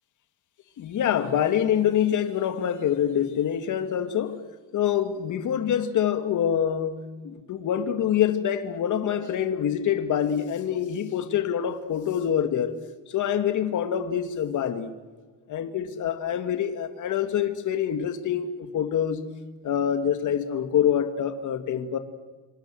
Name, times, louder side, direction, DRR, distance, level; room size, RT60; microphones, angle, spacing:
voice 1, 0.8-4.4 4.7-12.8 13.1-14.9 15.5-19.2 19.6-22.0, left 9 dB, 40° left, 2.2 m, -25 dB
27.0 x 26.0 x 7.8 m
cardioid pair, 170°, 47 cm